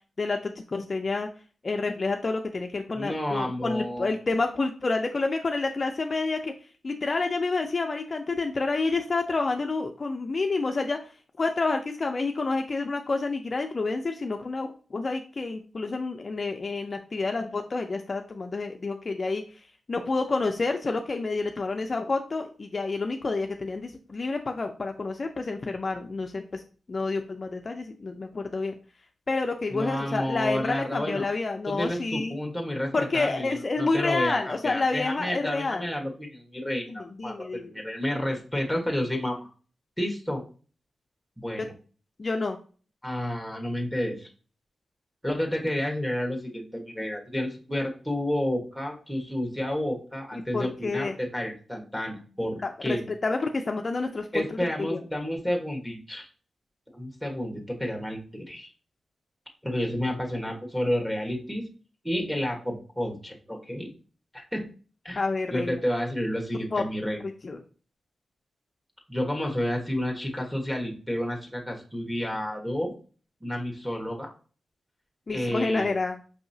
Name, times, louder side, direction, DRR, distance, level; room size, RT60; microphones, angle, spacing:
voice 1, 0.2-1.3 1.6-6.5 6.8-11.1 11.4-19.4 19.9-26.6 26.9-28.7 29.3-32.4 32.9-35.9 36.9-37.7 42.2-42.6 50.3-51.1 52.4-53.0 53.2-54.4 54.8-55.0 65.2-65.8 66.7-66.9 67.2-67.6 75.3-76.2, left 3 dB, 40° left, 4 dB, 0.4 m, -29 dB
voice 2, 2.9-4.1 29.7-31.3 31.7-39.5 40.0-40.4 41.4-41.7 43.0-44.3 45.2-53.0 54.3-56.3 56.9-58.7 59.6-61.6 62.0-63.9 64.3-64.7 65.0-65.2 65.5-67.2 69.1-72.9 73.4-74.3 75.3-75.9, left 1 dB, 5° right, 1 dB, 1.2 m, -30 dB
5.4 x 2.8 x 2.6 m, 0.38 s
wide cardioid pair, 100°, 0 cm